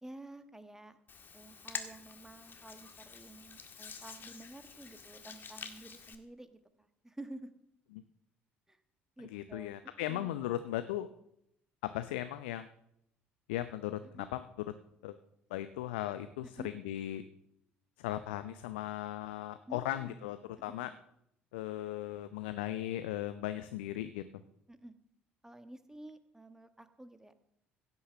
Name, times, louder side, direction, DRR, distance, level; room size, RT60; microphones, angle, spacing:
voice 1, 0.0-1.0 1.3-7.5 8.7-8.8 9.2-10.3 14.0-14.3 16.4-16.7 19.7-20.3 24.7-24.9 25.4-27.3, right 1 dB, 10° right, 10 dB, 1.4 m, -51 dB
Hands, 1.1-6.2, left 5 dB, 35° left, 1.7 m, -47 dB
voice 2, 9.3-11.1 11.8-12.7 13.5-14.4 15.0-15.2 15.5-17.2 18.0-20.9 21.5-24.2, left 13 dB, 70° left, 11 dB, 0.6 m, -37 dB
16.5 x 6.9 x 6.7 m, 0.76 s
figure-of-eight pair, 55°, 6 cm